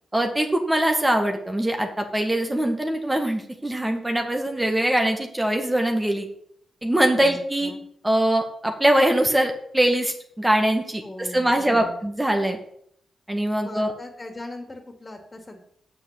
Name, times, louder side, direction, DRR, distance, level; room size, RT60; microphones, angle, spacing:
voice 1, 0.1-6.3 6.8-7.7 8.0-12.6 13.3-13.9, right 1 dB, 15° right, 4 dB, 1.8 m, -22 dB
voice 2, 7.2-7.8 11.0-12.0 13.6-15.6, left 1 dB, 35° left, 3 dB, 2.4 m, -39 dB
7.2 x 6.1 x 7.5 m, 0.68 s
supercardioid pair, 40°, 0 cm